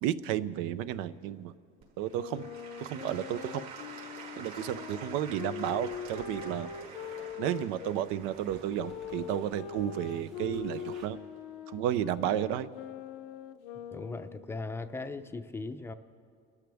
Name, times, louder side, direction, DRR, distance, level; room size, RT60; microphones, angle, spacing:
voice 1, 0.0-1.5 2.0-2.5 2.8-3.6 4.4-6.7 7.4-11.2 11.7-12.7, right 11 dB, 80° right, 15 dB, 0.6 m, -32 dB
Applause / Crowd, 1.8-10.7 11.3-11.4, right 5 dB, 45° right, 5.0 m, -48 dB
Wind instrument woodwind instrument, 2.1-8.0 8.8-14.5, left 9 dB, 85° left, 0.7 m, -42 dB
sound 1, 5.7-11.1, right 4 dB, 60° right, 2.4 m, -55 dB
voice 2, 13.9-15.9, left 3 dB, 10° left, 8 dB, 0.5 m, -38 dB
30.0 x 14.0 x 3.5 m, 2.3 s
cardioid pair, 150°, 21 cm